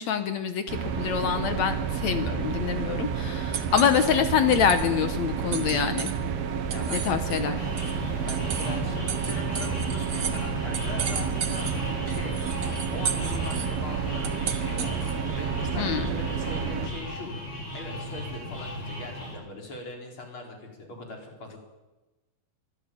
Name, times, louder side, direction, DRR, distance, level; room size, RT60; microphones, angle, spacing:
voice 1, 0.0-6.1 6.9-7.6 15.8-16.1, left 8 dB, 65° left, 9 dB, 1.9 m, -25 dB
sound 1, 0.7-16.9, right 7 dB, 85° right, 3.6 m, -30 dB
sound 2, 2.5-15.3, right 7 dB, 70° right, 1.0 m, -37 dB
voice 2, 6.7-7.1 8.2-11.7 12.0-12.4 12.9-15.0 15.3-17.4 17.7-21.6, left 3 dB, 35° left, 2 dB, 5.0 m, -41 dB
sound 3, 7.6-19.4, equal, 85° left, 9.9 m, -36 dB
23.5 x 16.0 x 9.1 m, 1.1 s
omnidirectional pair, 4.3 m